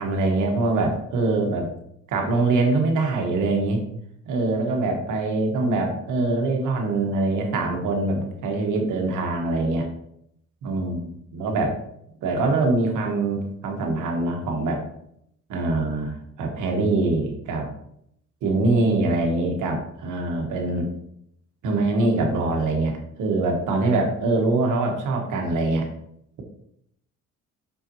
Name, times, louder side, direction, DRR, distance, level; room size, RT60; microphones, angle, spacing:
voice 1, 0.0-1.7 2.1-3.8 4.3-9.9 10.6-11.0 11.3-11.8 12.2-14.8 15.5-17.7 18.4-20.9 21.6-25.9, right 2 dB, 85° right, 2 dB, 1.3 m, -23 dB
5.8 x 5.6 x 2.9 m, 0.73 s
cardioid pair, 90°, 30 cm